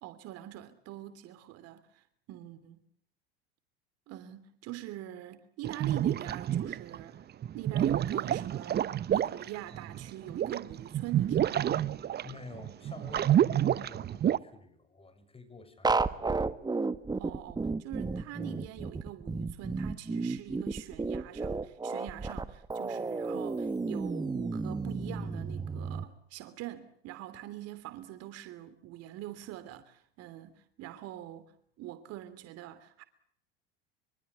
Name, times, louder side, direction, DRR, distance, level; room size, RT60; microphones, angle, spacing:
voice 1, 0.0-2.8 4.1-7.3 7.5-11.8 17.2-31.5 31.8-33.0, right 13 dB, 55° right, 3.0 m, -44 dB
sound 1, 5.6-7.0 7.4-14.4, right 10 dB, 30° right, 1.0 m, -29 dB
voice 2, 12.2-16.5, left 3 dB, 20° left, 6.7 m, -50 dB
sound 2, 15.8-26.0, right 3 dB, 15° right, 1.6 m, -32 dB
25.0 x 24.5 x 8.2 m
hypercardioid pair, 85°, 31 cm